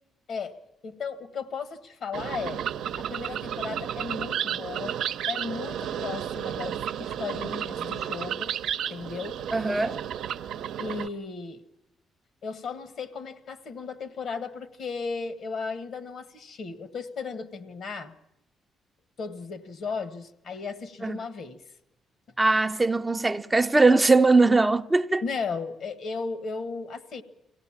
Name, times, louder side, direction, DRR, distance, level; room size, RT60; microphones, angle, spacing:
voice 1, 0.8-2.6 3.0-5.0 5.3-8.5 8.9-9.4 10.8-11.6 12.4-18.1 19.2-21.6 25.2-27.2, left 5 dB, 60° left, 1.6 m, -35 dB
sound 1, 2.1-11.1, right 9 dB, 80° right, 0.8 m, -32 dB
voice 2, 9.5-10.0 21.0-21.2 22.4-25.2, right 3 dB, 15° right, 0.6 m, -21 dB
23.5 x 17.0 x 7.3 m
cardioid pair, 90°, 0 cm